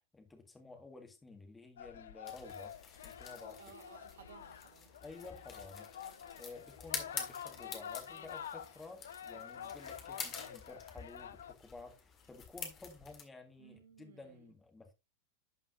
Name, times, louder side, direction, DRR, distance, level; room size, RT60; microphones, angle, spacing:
voice 1, 0.0-2.7 3.0-3.6 5.0-5.9 6.3-14.9, left 3 dB, 10° left, 1.8 m, -53 dB
sound 1, 1.8-11.5, left 8 dB, 65° left, 0.5 m, -48 dB
sound 2, 2.3-13.2, left 6 dB, 30° left, 1.8 m, -48 dB
voice 2, 3.6-4.9 13.6-14.5, right 7 dB, 60° right, 1.0 m, -58 dB
11.5 x 5.2 x 2.6 m
figure-of-eight pair, 90°, 0 cm